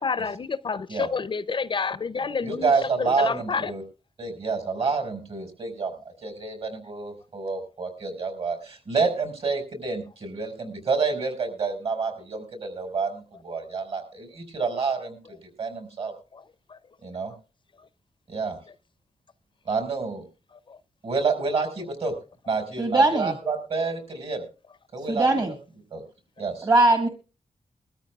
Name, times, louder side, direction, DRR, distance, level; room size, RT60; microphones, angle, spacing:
voice 1, 0.0-2.7 3.0-3.7 16.3-16.4 16.7-16.8 20.7-20.8, left 5 dB, 40° left, 0.5 m, -29 dB
voice 2, 2.4-3.8 4.2-5.9 6.2-15.2 15.6-16.1 17.0-17.3 18.3-18.6 19.6-20.2 21.0-22.1 22.5-24.4 24.9-25.4 25.9-26.0 26.4-26.7, right 4 dB, 55° right, 4.9 m, -28 dB
voice 3, 22.8-23.3 25.1-25.5 26.6-27.1, right 2 dB, 30° right, 1.5 m, -20 dB
22.0 x 13.5 x 2.3 m
wide cardioid pair, 120°, 12 cm